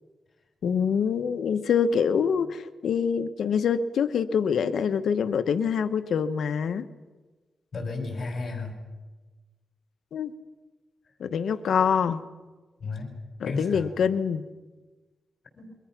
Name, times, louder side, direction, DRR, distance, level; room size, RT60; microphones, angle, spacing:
voice 1, 0.6-6.9 10.1-10.3 11.2-12.2 13.4-14.4, left 7 dB, 75° left, 10 dB, 1.1 m, -25 dB
voice 2, 7.7-8.8 12.8-13.1 13.4-13.9 15.6-15.7, left 3 dB, 45° left, 3 dB, 5.0 m, -33 dB
27.5 x 23.0 x 6.0 m, 1.3 s
cardioid pair, 110°, 0 cm